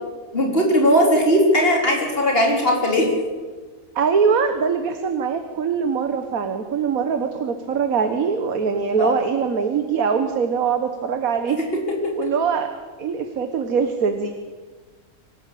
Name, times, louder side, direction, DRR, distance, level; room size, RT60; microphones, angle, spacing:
voice 1, 0.3-3.1 9.0-9.1, equal, 40° left, 1 dB, 4.5 m, -18 dB
voice 2, 3.9-11.6 12.2-12.7 13.0-14.3, right 6 dB, 70° right, 7 dB, 1.8 m, -22 dB
25.0 x 13.5 x 8.5 m, 1.4 s
omnidirectional pair, 1.6 m